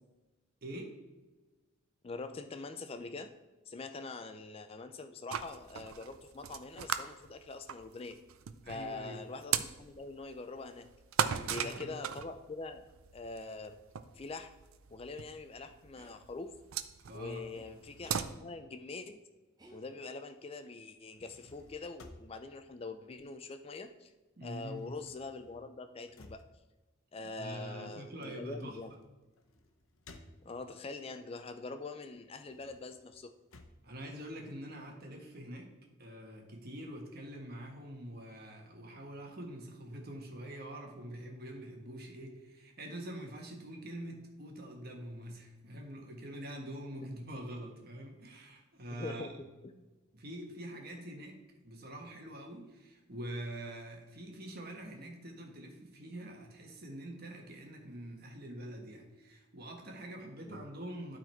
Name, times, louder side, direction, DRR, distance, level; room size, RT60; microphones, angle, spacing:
voice 1, 0.6-0.9 8.6-9.2 11.2-12.0 17.0-17.5 24.4-24.9 27.4-28.8 33.8-35.7 36.0-49.3 50.1-61.2, right 1 dB, 50° right, 1 dB, 1.4 m, -45 dB
voice 2, 2.0-3.4 3.7-8.2 8.7-10.9 11.5-12.9 13.1-13.8 14.1-14.5 14.9-16.6 17.1-19.3 19.7-24.1 24.4-26.4 27.1-28.9 30.4-33.3 48.9-49.8 60.5-60.6, left 3 dB, 30° left, 8 dB, 0.4 m, -44 dB
sound 1, 5.3-18.3, right 8 dB, 85° right, 0.5 m, -39 dB
sound 2, 15.9-16.2 17.5-17.7 18.0-18.3 19.6-20.2, right 2 dB, 20° right, 0.9 m, -57 dB
sound 3, 21.0-23.8 24.1-30.9 31.4-34.9, left 2 dB, 80° left, 0.8 m, -59 dB
12.0 x 4.0 x 4.4 m, 1.1 s
head